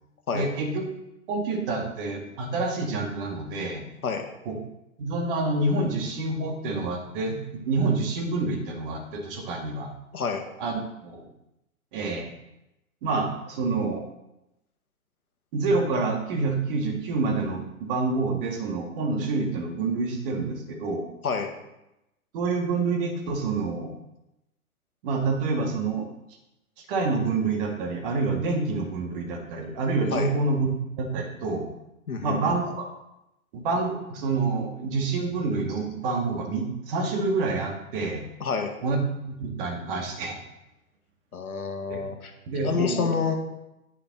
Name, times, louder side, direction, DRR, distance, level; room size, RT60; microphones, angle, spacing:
voice 1, 0.3-0.9 1.3-3.8 4.5-4.6 5.0-9.9 10.6-11.2 11.9-12.3 13.0-14.0 15.5-21.0 22.3-23.9 25.0-26.1 26.9-30.7 31.0-31.7 32.2-32.9 33.5-38.2 38.8-39.0 39.2-40.4 41.9-42.0 42.5-43.1, right 3 dB, 40° right, 3 dB, 1.9 m, -27 dB
voice 2, 32.1-32.4 38.4-38.7 41.3-42.3 42.6-43.3, left 6 dB, 80° left, 5 dB, 1.5 m, -28 dB
9.3 x 7.2 x 3.9 m, 0.89 s
hypercardioid pair, 125°, 43 cm